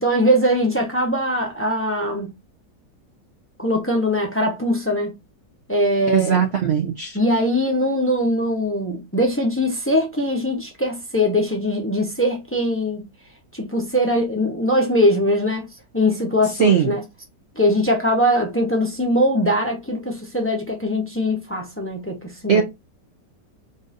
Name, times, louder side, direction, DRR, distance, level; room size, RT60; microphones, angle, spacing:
voice 1, 0.0-2.3 3.6-5.1 5.7-6.4 7.1-13.1 13.5-15.7 15.9-17.0 17.6-22.6, equal, 20° left, 0.3 m, -21 dB
voice 2, 6.1-7.2 16.6-16.9 22.5-22.6, right 7 dB, 85° right, 0.5 m, -19 dB
3.8 x 2.5 x 3.9 m
omnidirectional pair, 1.9 m